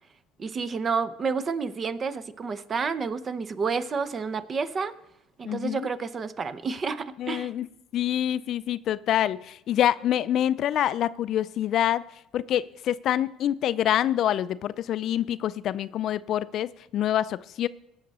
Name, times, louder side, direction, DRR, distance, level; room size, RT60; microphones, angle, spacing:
voice 1, 0.4-4.9 5.4-7.5, right 5 dB, 35° right, 15 dB, 0.7 m, -30 dB
voice 2, 5.4-5.9 7.2-7.7 7.9-12.0 12.3-17.7, left 11 dB, 60° left, 17 dB, 0.3 m, -26 dB
17.0 x 6.5 x 4.1 m, 0.82 s
supercardioid pair, 85°, 0 cm